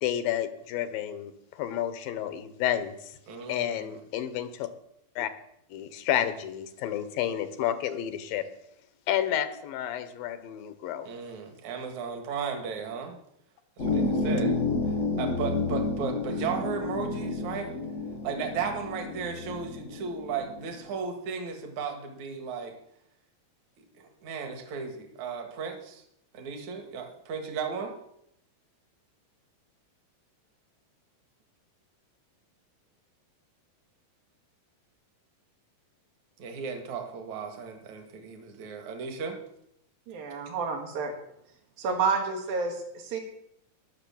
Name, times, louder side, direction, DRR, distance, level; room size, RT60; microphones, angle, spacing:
voice 1, 0.0-2.9 3.5-4.7 5.2-5.3 5.7-8.5 9.1-11.1, left 11 dB, 80° left, 11 dB, 2.8 m, -30 dB
voice 2, 3.3-4.0 11.0-13.2 13.8-14.6 14.9-17.7 18.2-22.7 23.9-26.0 26.3-27.9 36.4-39.4, right 6 dB, 60° right, 4 dB, 3.0 m, -35 dB
sound 1, 13.8-20.8, left 3 dB, 40° left, 1.1 m, -30 dB
voice 3, 40.1-41.1 41.8-43.2, right 5 dB, 90° right, 3 dB, 3.7 m, -29 dB
20.0 x 6.8 x 7.1 m, 0.77 s
omnidirectional pair, 4.0 m